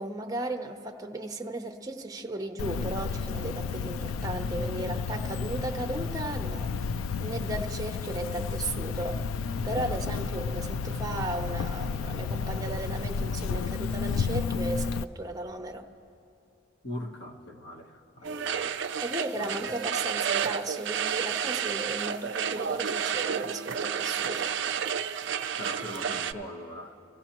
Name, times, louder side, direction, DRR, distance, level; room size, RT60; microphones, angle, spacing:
voice 1, 0.0-6.8 7.2-9.3 9.6-15.9 19.0-24.5, right 2 dB, 15° right, 3 dB, 0.7 m, -35 dB
Cricket, 2.6-15.0, left 5 dB, 85° left, 0.3 m, -32 dB
voice 2, 16.8-18.8 19.4-19.6 25.2-25.3 25.6-26.9, left 1 dB, 55° left, 2 dB, 1.1 m, -40 dB
sound 1, 18.2-26.3, right 8 dB, 60° right, 0.4 m, -31 dB
27.5 x 15.5 x 3.0 m, 2.6 s
head